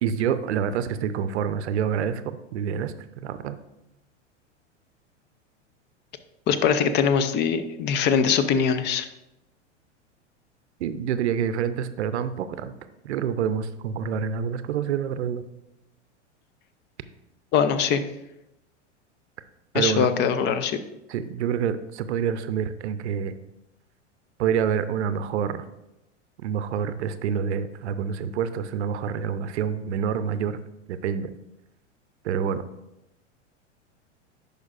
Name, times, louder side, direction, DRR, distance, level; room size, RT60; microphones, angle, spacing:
voice 1, 0.0-2.9 3.2-3.6 10.8-12.7 13.0-15.4 19.7-20.1 21.1-23.4 24.4-25.7 26.4-30.6 30.9-31.3 32.2-32.6, right 8 dB, 65° right, 12 dB, 0.6 m, -27 dB
voice 2, 6.5-9.1 17.5-18.0 19.7-20.8, left 7 dB, 30° left, 11 dB, 0.5 m, -22 dB
10.5 x 5.1 x 2.5 m, 0.88 s
hypercardioid pair, 100°, 36 cm